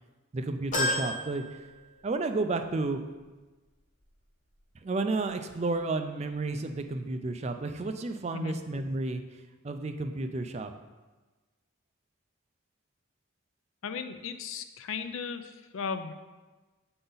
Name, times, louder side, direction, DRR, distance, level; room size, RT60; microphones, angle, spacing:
voice 1, 0.3-1.6 2.0-3.0 4.8-9.2 9.6-10.7, right 3 dB, 30° right, 7 dB, 0.3 m, -31 dB
sound 1, 0.7-2.4 2.8-2.9 4.1-4.2, left 1 dB, 35° left, 1.0 m, -32 dB
voice 2, 13.8-16.1, left 6 dB, 70° left, 9 dB, 0.4 m, -36 dB
7.9 x 3.9 x 3.9 m, 1.2 s
head